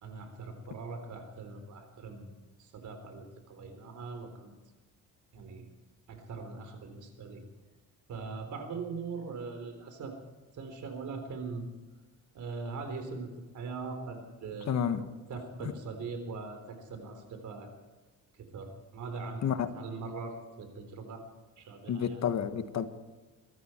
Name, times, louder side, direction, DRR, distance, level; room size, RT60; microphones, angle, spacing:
voice 1, 0.0-2.3 2.6-4.5 5.3-5.7 6.1-7.4 8.1-10.1 10.5-11.7 12.3-13.3 13.5-17.7 18.4-19.4 19.7-21.2 21.6-22.2, right 4 dB, 60° right, 7 dB, 3.9 m, -41 dB
voice 2, 14.7-15.0 15.6-15.7 19.4-19.7 21.9-22.9, left 8 dB, 50° left, 10 dB, 1.5 m, -30 dB
22.5 x 14.0 x 4.5 m, 1.2 s
cardioid pair, 120°, 34 cm